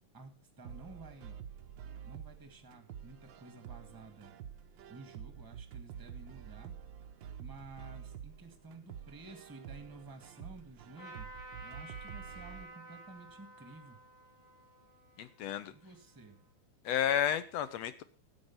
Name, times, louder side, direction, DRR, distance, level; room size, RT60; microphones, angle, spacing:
voice 1, 0.6-1.4 2.0-4.3 4.9-6.7 7.4-11.3 11.6-14.0 15.7-16.4, right 3 dB, 10° right, 7 dB, 1.4 m, -52 dB
sound 1, 0.6-12.6, right 8 dB, 85° right, 1.0 m, -48 dB
Trumpet, 11.0-16.5, right 1 dB, 40° left, 7.0 m, -52 dB
voice 2, 15.2-15.7 16.9-18.0, left 10 dB, 70° left, 13 dB, 1.7 m, -32 dB
12.5 x 8.6 x 5.9 m, 0.38 s
omnidirectional pair, 3.4 m